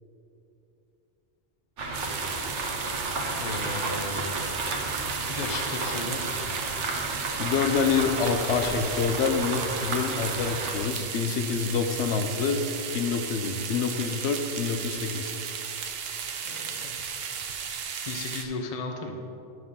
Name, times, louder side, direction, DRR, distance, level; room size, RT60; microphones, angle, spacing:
sound 1, 1.8-10.8, right 2 dB, 90° right, 1.3 m, -33 dB
sound 2, 1.9-18.5, right 7 dB, 60° right, 0.8 m, -35 dB
voice 1, 3.4-4.3 5.3-6.5 16.4-17.0 17.6-17.8 18.1-19.2, left 3 dB, 40° left, 3 dB, 0.7 m, -35 dB
voice 2, 7.4-12.6 12.9-15.4, left 5 dB, 75° left, 7 dB, 0.9 m, -27 dB
11.0 x 5.6 x 3.7 m, 3.0 s
omnidirectional pair, 1.2 m